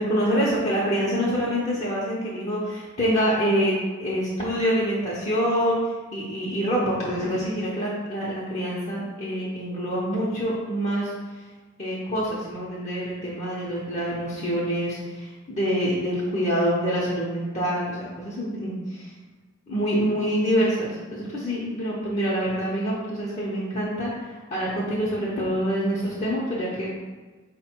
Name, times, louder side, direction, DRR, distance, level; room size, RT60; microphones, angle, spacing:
voice 1, 0.0-3.7 4.0-11.1 11.8-19.1 19.7-26.9, equal, 30° left, -7 dB, 0.7 m, -26 dB
4.5 x 2.2 x 4.3 m, 1.3 s
head